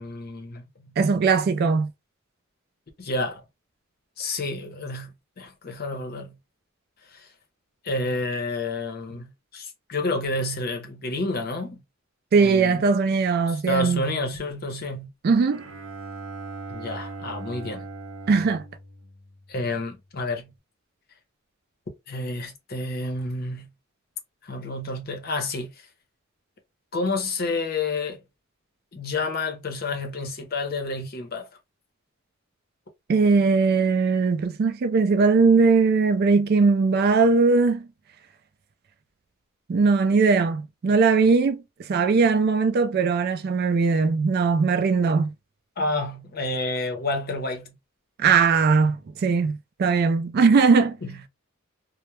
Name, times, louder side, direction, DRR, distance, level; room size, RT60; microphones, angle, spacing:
voice 1, 0.0-0.9 3.0-3.4 4.2-6.4 7.1-7.3 7.8-11.8 12.4-12.8 13.5-15.1 16.7-17.9 19.5-20.5 22.1-23.7 24.4-25.7 26.9-28.2 28.9-31.5 45.8-47.8 51.0-51.3, left 2 dB, 50° left, 0.7 m, -29 dB
voice 2, 1.0-1.9 12.3-14.0 15.2-15.6 18.3-18.6 33.1-37.9 39.7-41.6 41.9-45.3 48.2-51.0, right 4 dB, 50° right, 0.3 m, -20 dB
Bowed string instrument, 15.5-19.9, right 3 dB, 85° right, 0.8 m, -39 dB
2.2 x 2.0 x 2.9 m
head